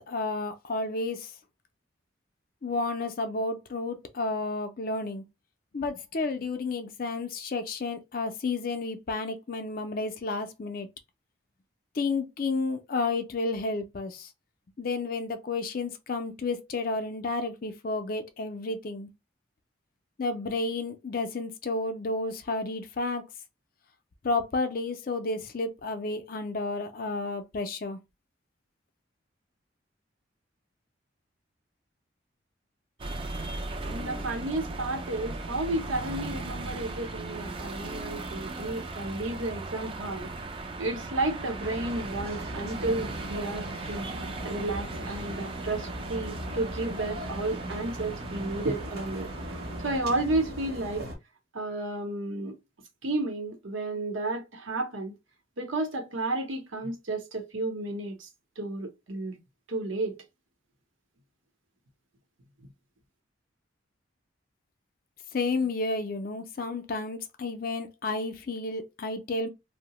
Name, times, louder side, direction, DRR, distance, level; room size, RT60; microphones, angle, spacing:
voice 1, 0.0-1.3 2.6-5.2 5.7-10.9 12.0-14.3 14.8-19.1 20.2-23.2 24.2-28.0 65.3-69.5, left 3 dB, 45° left, 0.4 m, -31 dB
sound 1, 33.0-50.0, right 2 dB, 25° right, 0.4 m, -38 dB
voice 2, 33.8-40.3 40.8-44.1 44.4-49.3 49.8-51.0 51.5-52.6 53.0-55.1 55.6-58.3 58.6-59.4 59.7-60.2 62.6-62.7, right 2 dB, 80° right, 0.8 m, -32 dB
sound 2, 41.6-51.2, equal, 50° right, 0.9 m, -39 dB
2.7 x 2.0 x 2.9 m
head